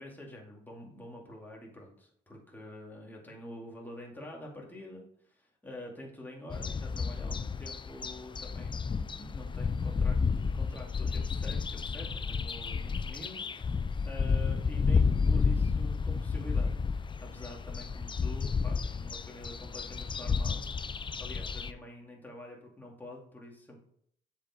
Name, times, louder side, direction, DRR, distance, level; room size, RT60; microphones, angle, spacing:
voice 1, 0.0-13.8 14.0-20.8 21.2-23.8, left 1 dB, 10° left, -2 dB, 2.3 m, -46 dB
sound 1, 6.5-21.7, left 5 dB, 25° left, 0.4 m, -31 dB
7.3 x 5.0 x 4.4 m, 0.65 s
cardioid pair, 90°, 20 cm